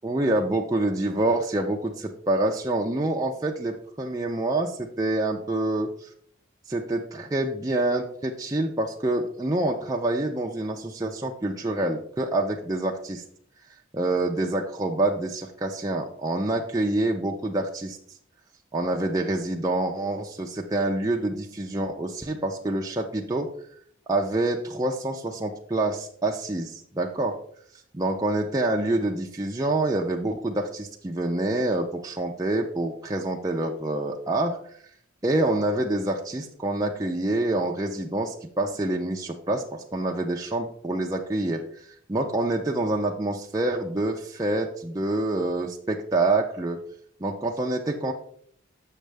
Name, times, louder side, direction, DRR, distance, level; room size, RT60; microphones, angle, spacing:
voice 1, 0.0-6.1 6.7-13.2 13.9-18.0 18.7-23.5 24.1-27.3 27.9-34.6 35.2-46.8 47.2-48.1, right 2 dB, 20° right, 0 dB, 0.5 m, -27 dB
6.4 x 6.3 x 3.4 m, 0.62 s
head